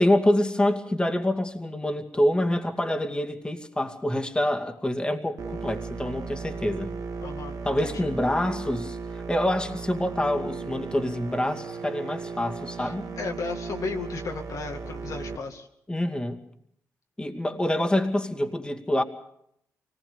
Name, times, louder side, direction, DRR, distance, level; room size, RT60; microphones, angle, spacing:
voice 1, 0.0-6.9 7.6-13.0 15.9-16.4 17.2-19.0, left 1 dB, 15° left, 5 dB, 2.3 m, -26 dB
sound 1, 5.4-15.4, right 5 dB, 60° right, 2.1 m, -36 dB
voice 2, 7.2-8.1 12.8-15.7, left 4 dB, 60° left, 3 dB, 2.3 m, -35 dB
24.0 x 19.0 x 6.9 m, 0.71 s
cardioid pair, 70°, 6 cm